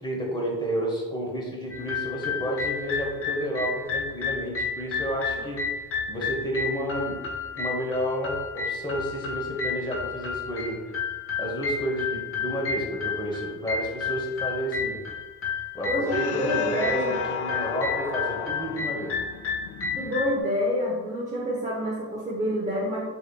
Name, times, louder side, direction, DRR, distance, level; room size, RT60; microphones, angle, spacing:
voice 1, 0.0-5.8 6.1-7.2 7.5-10.8 11.4-15.0 15.7-19.2, equal, 10° left, -1 dB, 0.9 m, -30 dB
sound 1, 1.7-20.4, left 5 dB, 35° left, 0.6 m, -32 dB
voice 2, 15.9-17.1 20.0-23.0, equal, 20° right, -6 dB, 0.9 m, -27 dB
sound 2, 16.1-20.8, left 7 dB, 85° left, 0.5 m, -35 dB
4.9 x 4.1 x 2.3 m, 1.3 s
cardioid pair, 130°, 39 cm